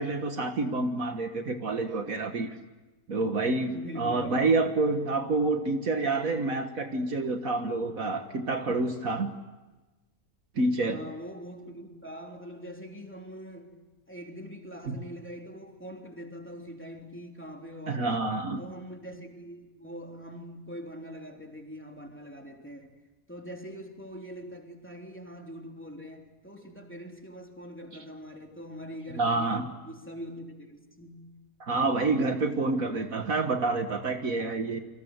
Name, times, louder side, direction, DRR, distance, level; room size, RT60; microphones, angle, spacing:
voice 1, 0.0-2.5 3.1-9.3 10.6-11.0 14.9-15.0 17.9-18.6 29.1-29.7 31.6-34.8, right 3 dB, 60° right, 6 dB, 1.9 m, -28 dB
voice 2, 3.7-4.4 10.8-18.2 18.6-23.0 23.3-31.3, equal, 5° left, 1 dB, 3.5 m, -43 dB
28.5 x 24.5 x 8.1 m, 1.2 s
omnidirectional pair, 1.7 m